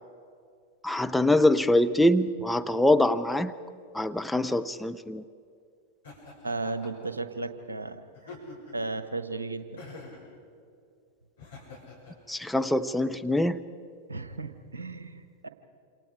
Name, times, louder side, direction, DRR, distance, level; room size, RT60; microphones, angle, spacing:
voice 1, 0.8-3.5 3.9-5.2 12.3-13.6, left 1 dB, 5° left, 8 dB, 0.6 m, -24 dB
Laughter, 6.0-7.1 8.1-8.9 9.8-10.3 11.4-12.2, left 3 dB, 65° left, 6.6 m, -46 dB
voice 2, 6.4-8.4 8.7-9.8 14.1-15.5, right 3 dB, 75° right, 9 dB, 1.4 m, -35 dB
28.0 x 27.5 x 5.0 m, 2.4 s
figure-of-eight pair, 90°, 0 cm